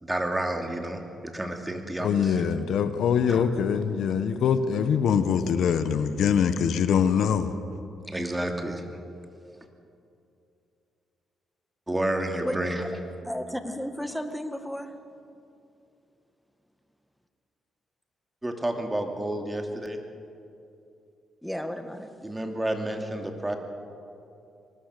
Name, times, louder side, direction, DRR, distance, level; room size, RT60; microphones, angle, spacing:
voice 1, 0.0-2.5 3.3-3.4 3.9-4.2 8.1-8.8 11.9-12.8 18.4-20.0 22.2-23.6, right 1 dB, 15° right, 3 dB, 2.8 m, -30 dB
voice 2, 2.0-7.5, left 7 dB, 75° left, 11 dB, 1.1 m, -23 dB
voice 3, 13.2-15.0 21.4-22.1, equal, 5° left, 8 dB, 1.7 m, -33 dB
24.0 x 19.5 x 6.7 m, 2.6 s
cardioid pair, 80°, 0 cm